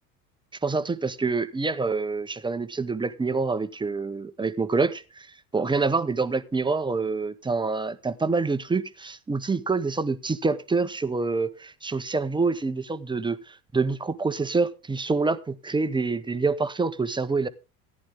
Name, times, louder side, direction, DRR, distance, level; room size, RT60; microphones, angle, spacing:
voice 1, 0.6-5.3 5.5-17.5, right 4 dB, 10° right, 0.7 m, -26 dB
14.0 x 10.5 x 3.6 m
hypercardioid pair, 75°, 46 cm